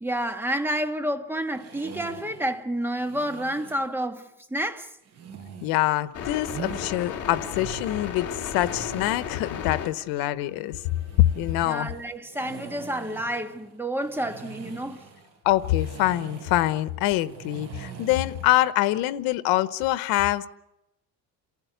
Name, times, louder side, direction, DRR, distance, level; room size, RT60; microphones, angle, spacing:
voice 1, 0.0-4.9 11.6-15.0, right 1 dB, 5° right, 1.5 m, -29 dB
sound 1, 1.5-3.9 5.0-6.9 7.3-9.3 10.7-18.6, right 6 dB, 45° right, 6.3 m, -44 dB
voice 2, 5.6-10.8 11.2-11.9 15.4-20.5, left 15 dB, 90° left, 1.1 m, -24 dB
sound 2, 6.1-9.9 10.2-11.6, left 7 dB, 40° left, 2.8 m, -34 dB
28.0 x 16.0 x 8.2 m
cardioid pair, 135°, 35 cm